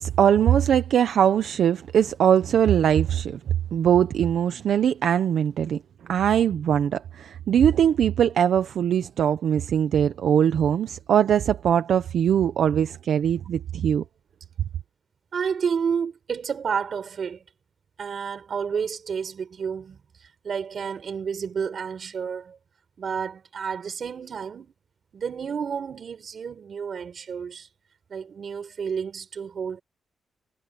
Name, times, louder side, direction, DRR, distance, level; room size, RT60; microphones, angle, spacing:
voice 1, 0.0-3.4 3.7-14.0, right 9 dB, 70° right, 0.8 m, -21 dB
voice 2, 15.3-17.4 18.0-20.0 20.4-22.6 23.0-24.7 25.1-27.7 28.1-29.8, right 6 dB, 45° right, 5.0 m, -30 dB
wide cardioid pair, 175°, 0 cm